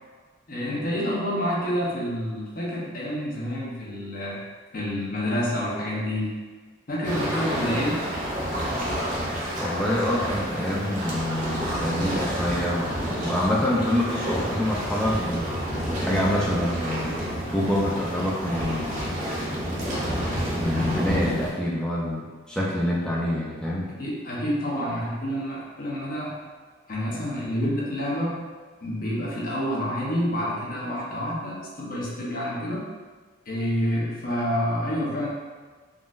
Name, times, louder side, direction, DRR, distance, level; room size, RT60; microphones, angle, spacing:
voice 1, 0.5-4.4 4.7-6.4 6.9-8.1 24.0-26.4 26.9-28.4 28.8-32.8 33.5-35.3, equal, 45° left, -5 dB, 0.7 m, -28 dB
sound 1, 7.0-21.5, equal, 40° right, 0.6 m, -29 dB
voice 2, 9.6-15.5 16.1-17.2 17.5-19.1 20.5-23.9, left 1 dB, 5° left, -5 dB, 0.4 m, -26 dB
3.8 x 2.1 x 2.4 m, 1.4 s
head